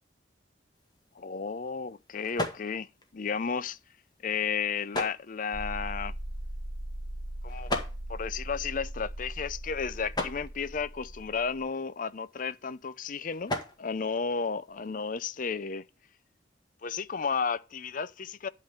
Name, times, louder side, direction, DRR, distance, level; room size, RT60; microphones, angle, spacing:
sound 1, 0.7-15.1, left 1 dB, 25° left, 1.8 m, -41 dB
voice 1, 1.2-3.8 4.2-6.1 7.4-7.7 8.1-13.5 13.8-15.8 16.8-18.5, left 5 dB, 50° left, 0.6 m, -33 dB
sound 2, 5.5-11.7, right 1 dB, 35° right, 0.8 m, -39 dB
11.5 x 3.8 x 7.1 m
head